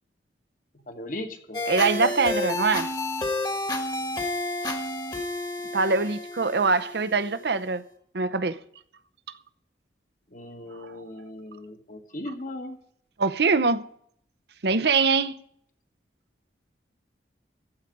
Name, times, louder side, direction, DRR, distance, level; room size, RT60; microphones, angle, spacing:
voice 1, 0.7-1.6 10.3-12.8, left 1 dB, 45° left, 1.4 m, -38 dB
sound 1, 1.5-7.6, left 2 dB, 25° left, 1.4 m, -30 dB
voice 2, 1.7-2.9 4.6-4.8 5.7-7.8 8.1-8.6 13.2-13.9 14.6-15.3, right 4 dB, 70° right, 0.7 m, -23 dB
14.5 x 4.9 x 9.2 m
head